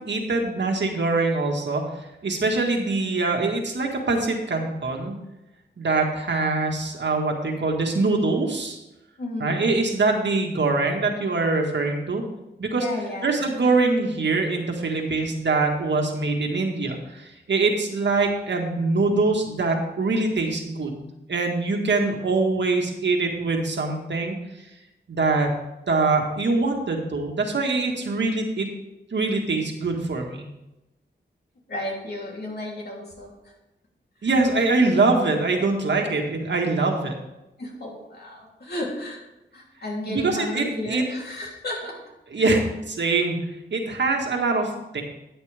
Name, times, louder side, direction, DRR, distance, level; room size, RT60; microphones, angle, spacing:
voice 1, 0.0-1.8 2.2-5.2 5.8-8.8 9.4-12.2 12.6-12.9 13.2-24.4 25.1-25.5 25.9-28.7 29.1-30.5 34.2-37.1 40.1-41.0 42.3-42.6 43.0-43.4 43.7-45.0, right 3 dB, 75° right, 1 dB, 1.8 m, -23 dB
voice 2, 9.2-9.6 12.8-13.5 31.7-33.3 34.2-34.3 37.6-39.2 39.5-42.0 42.3-42.6, left 1 dB, 60° left, -3 dB, 3.1 m, -33 dB
12.5 x 8.8 x 3.5 m, 0.95 s
wide cardioid pair, 75°, 19 cm